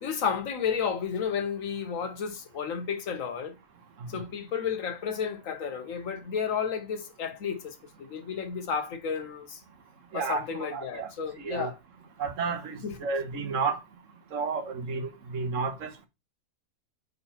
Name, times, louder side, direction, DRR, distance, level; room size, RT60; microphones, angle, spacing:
voice 1, 0.0-3.5 4.1-9.6 10.1-11.7 12.8-13.0, left 7 dB, 70° left, 1.4 m, -32 dB
voice 2, 10.1-11.1 11.4-11.7 12.2-13.8 14.3-16.1, right 5 dB, 65° right, 1.4 m, -32 dB
4.4 x 4.2 x 5.6 m
omnidirectional pair, 1.5 m